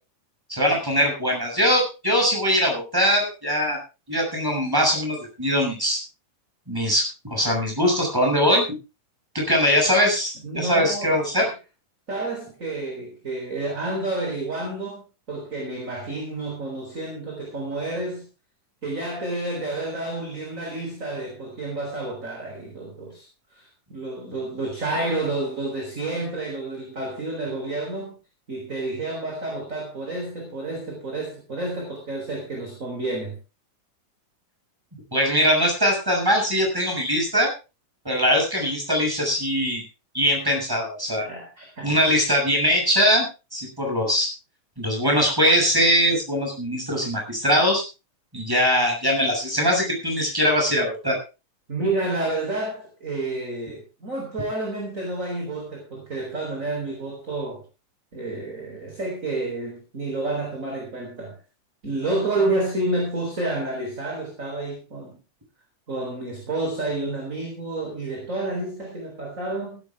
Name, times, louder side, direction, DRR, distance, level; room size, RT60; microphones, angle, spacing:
voice 1, 0.5-3.8 4.1-6.0 6.7-8.7 9.3-11.5 35.1-37.5 38.0-39.8 40.1-41.2 41.8-43.3 43.5-44.3 44.8-47.8 48.3-51.2, equal, 5° right, 0 dB, 6.5 m, -21 dB
voice 2, 10.4-11.5 12.1-15.0 15.3-18.3 18.8-28.1 28.5-33.4 41.2-41.9 51.7-57.6 58.1-61.3 61.8-65.2 65.9-69.8, right 2 dB, 25° right, 1 dB, 4.0 m, -30 dB
15.5 x 13.5 x 3.5 m, 0.30 s
omnidirectional pair, 3.8 m